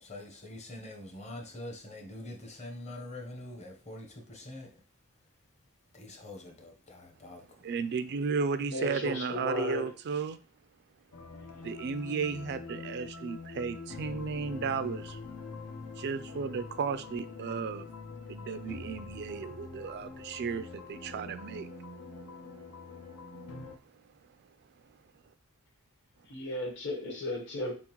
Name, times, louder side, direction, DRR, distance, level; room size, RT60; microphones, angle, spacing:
voice 1, 0.0-4.7 5.9-7.6, left 1 dB, 30° left, 0.9 m, -44 dB
voice 2, 7.6-10.4 11.6-15.2 16.0-17.9 18.3-21.7, right 5 dB, 50° right, 0.3 m, -34 dB
voice 3, 8.7-9.9 11.5-11.6 26.3-27.7, left 1 dB, 55° left, 1.2 m, -35 dB
sound 1, 11.1-23.8, left 4 dB, 85° left, 0.8 m, -44 dB
4.4 x 3.6 x 3.0 m
head